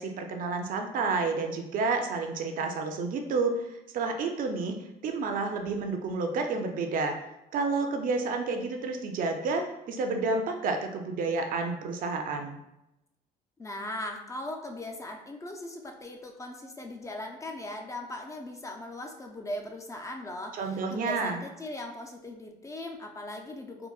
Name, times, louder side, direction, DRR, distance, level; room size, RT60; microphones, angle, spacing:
voice 1, 0.0-4.7 5.0-7.2 7.5-12.6 20.6-21.4, right 4 dB, 55° right, 4 dB, 0.4 m, -30 dB
voice 2, 13.6-23.9, left 1 dB, 20° left, 2 dB, 0.3 m, -39 dB
3.7 x 2.0 x 2.3 m, 0.88 s
cardioid pair, 110°, 17 cm